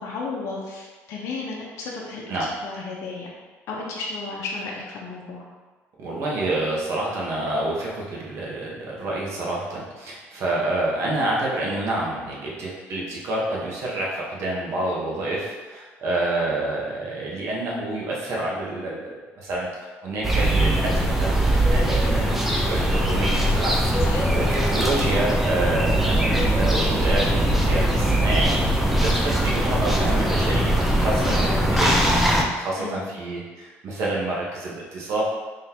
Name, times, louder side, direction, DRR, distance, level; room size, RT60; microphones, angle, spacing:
voice 1, 0.0-2.2 2.6-3.3 3.7-5.4 22.0-22.3 24.1-24.6 28.0-28.2 31.2-31.8 32.8-33.0, left 3 dB, 65° left, -3 dB, 0.7 m, -33 dB
voice 2, 6.0-19.7 20.0-21.3 21.7-22.3 22.7-23.9 24.7-32.1 32.4-35.2, right 2 dB, 60° right, -4 dB, 1.1 m, -28 dB
sound 1, 20.2-32.4, right 1 dB, 5° right, 0.5 m, -21 dB
3.8 x 3.2 x 2.8 m, 1.3 s
cardioid pair, 110°, 5 cm